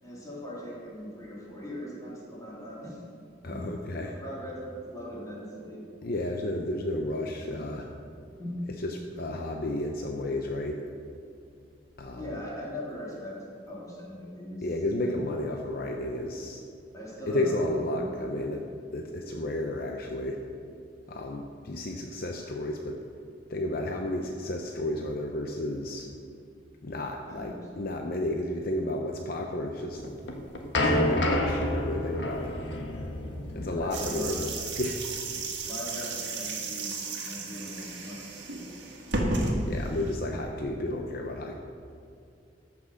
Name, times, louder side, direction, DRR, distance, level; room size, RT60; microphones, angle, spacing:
voice 1, 0.0-3.0 3.5-3.6 4.0-5.8 7.3-7.7 8.4-8.5 12.1-14.7 15.0-15.2 16.9-18.1 27.3-27.7 33.7-34.3 35.6-36.9 37.2-38.8, equal, 20° left, -7 dB, 3.3 m, -40 dB
voice 2, 3.4-4.2 6.0-7.9 8.7-10.8 12.0-12.4 14.6-16.6 17.3-18.6 18.9-20.4 21.1-23.0 23.5-26.1 26.8-30.0 30.8-32.6 33.5-35.0 39.7-41.6, left 1 dB, 55° left, 2 dB, 0.7 m, -32 dB
sound 1, 30.0-34.9, left 1 dB, 75° left, 1.5 m, -29 dB
sound 2, 33.9-40.1, right 2 dB, 65° right, 1.7 m, -33 dB
14.0 x 6.1 x 6.3 m, 2.5 s
head